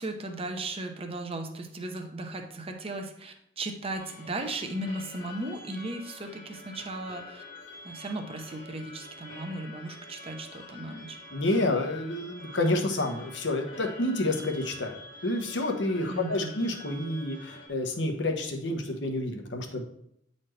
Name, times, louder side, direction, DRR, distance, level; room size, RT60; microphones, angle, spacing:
voice 1, 0.0-7.4 7.8-11.2 16.1-16.6, right 2 dB, 30° right, 4 dB, 0.8 m, -36 dB
sound 1, 3.9-17.7, left 2 dB, 90° left, 1.5 m, -47 dB
voice 2, 11.3-15.0 15.2-19.8, left 2 dB, 70° left, 3 dB, 1.1 m, -29 dB
9.0 x 4.2 x 3.3 m, 0.74 s
head